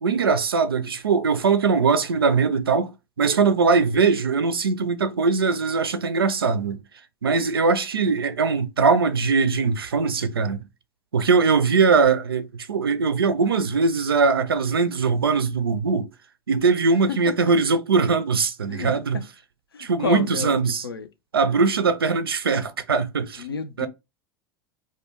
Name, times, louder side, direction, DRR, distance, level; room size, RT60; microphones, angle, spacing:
voice 1, 0.0-2.9 3.2-6.8 7.2-10.6 11.1-16.1 16.5-19.2 19.8-20.8 21.3-23.5 23.8-23.9, right 4 dB, 85° right, 0.4 m, -21 dB
voice 2, 7.4-7.7 17.1-17.4 18.7-19.2 19.7-20.6 20.8-21.1 23.4-23.9, left 6 dB, 85° left, 0.4 m, -32 dB
2.2 x 2.1 x 3.3 m
figure-of-eight pair, 85°, 12 cm